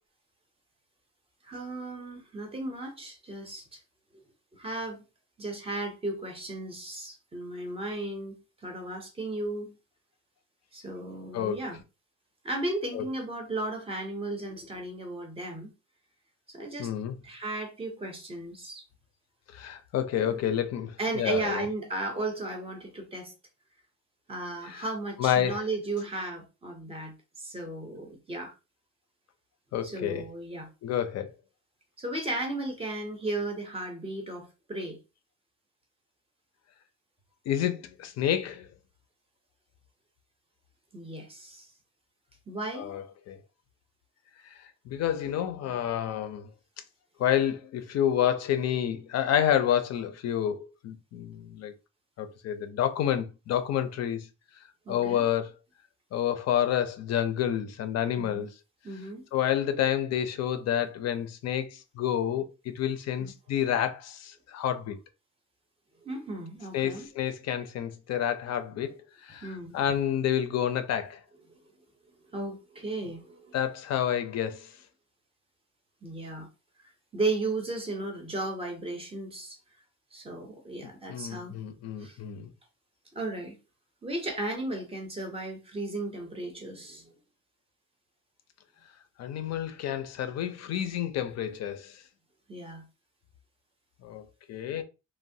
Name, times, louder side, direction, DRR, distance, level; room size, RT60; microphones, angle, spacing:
voice 1, 1.4-3.8 4.1-4.2 4.5-5.0 5.4-8.4 8.6-9.7 10.7-11.8 12.4-15.7 16.5-16.9 17.2-18.8 20.2-20.4 21.0-23.3 24.3-28.5 29.8-30.7 32.0-35.0 40.9-41.7 42.5-42.9 54.9-55.3 58.2-58.5 58.8-59.2 63.2-63.3 66.0-67.1 69.4-69.8 72.3-73.5 76.0-76.5 77.1-79.6 80.1-81.5 82.0-82.2 83.1-83.6 84.0-87.1 92.5-92.8, right 2 dB, 20° right, 0.5 m, -35 dB
voice 2, 16.8-17.1 19.5-21.7 24.7-24.8 25.2-25.6 29.7-30.2 30.8-31.3 37.5-38.7 42.7-43.4 44.9-46.5 47.2-51.7 52.2-54.3 54.9-55.5 56.1-58.5 59.3-65.0 66.7-68.9 69.2-71.2 73.5-74.7 81.1-82.5 89.2-91.9 94.0-94.8, left 10 dB, 60° left, 0.4 m, -29 dB
3.0 x 2.1 x 2.6 m
cardioid pair, 175°, 30 cm